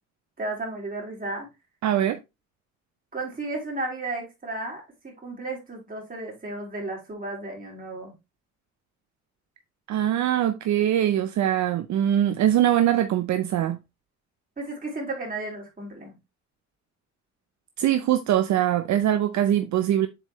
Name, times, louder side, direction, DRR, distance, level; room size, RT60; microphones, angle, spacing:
voice 1, 0.4-1.5 3.1-8.1 14.6-16.1, right 2 dB, 30° right, 3.7 m, -33 dB
voice 2, 1.8-2.2 9.9-13.8 17.8-20.1, right 11 dB, 65° right, 0.6 m, -22 dB
7.3 x 4.5 x 3.0 m
cardioid pair, 90°, 30 cm